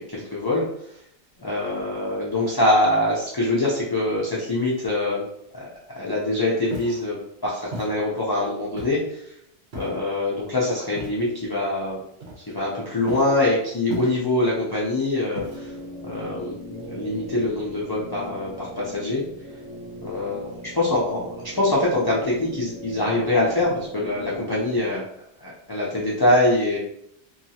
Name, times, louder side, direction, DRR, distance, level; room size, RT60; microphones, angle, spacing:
voice 1, 0.1-0.6 1.4-5.2 5.9-7.2 7.4-9.3 9.7-12.0 12.5-15.7 16.0-19.2 20.0-25.0 25.4-26.8, left 2 dB, 35° left, -6 dB, 0.4 m, -24 dB
Walk footsteps, 6.7-7.0 7.7-7.9 8.8-9.1 9.7-10.1 10.9-11.3 12.2-12.7 13.1-13.4 13.9-14.4 15.4-15.8, right 2 dB, 65° right, 1.0 m, -35 dB
sound 1, 15.4-24.8, equal, 30° right, 0.8 m, -40 dB
2.8 x 2.3 x 2.7 m, 0.74 s
omnidirectional pair, 1.2 m